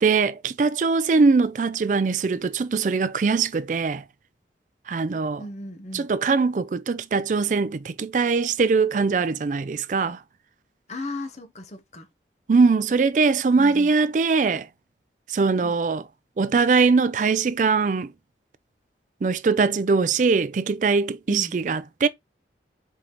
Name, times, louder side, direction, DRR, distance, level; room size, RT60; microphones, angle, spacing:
voice 1, 0.0-4.0 4.9-5.4 5.9-10.2 12.5-14.7 15.3-16.0 16.4-18.1 19.2-22.1, right 4 dB, 45° right, 0.3 m, -21 dB
voice 2, 5.3-6.1 10.9-12.1 13.6-13.9 15.6-15.7 21.3-21.6, left 1 dB, 40° left, 0.8 m, -36 dB
4.6 x 3.8 x 3.0 m
head